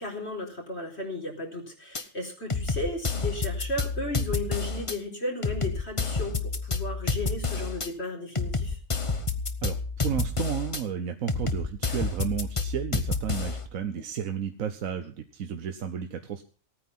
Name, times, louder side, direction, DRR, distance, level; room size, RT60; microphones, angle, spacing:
voice 1, 0.0-8.8 13.9-14.0, left 2 dB, 50° left, 0 dB, 4.4 m, -35 dB
sound 1, 2.0-2.1 2.5-5.0 5.4-7.9 8.4-10.8 11.3-13.7, left 4 dB, 25° left, 1.0 m, -29 dB
voice 2, 10.0-16.4, right 8 dB, 90° right, 7 dB, 1.3 m, -32 dB
17.5 x 9.5 x 5.6 m, 0.40 s
omnidirectional pair, 1.4 m